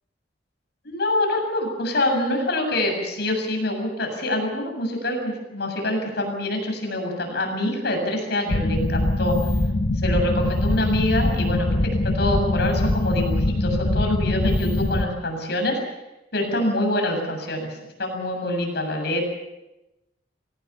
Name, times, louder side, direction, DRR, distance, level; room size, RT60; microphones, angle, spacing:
voice 1, 0.8-9.4 10.0-11.8 12.0-15.8 16.3-19.3, left 1 dB, 65° left, 3 dB, 7.5 m, -25 dB
sound 1, 8.5-15.1, left 1 dB, 45° left, 1.1 m, -22 dB
25.0 x 18.0 x 7.2 m, 0.98 s
head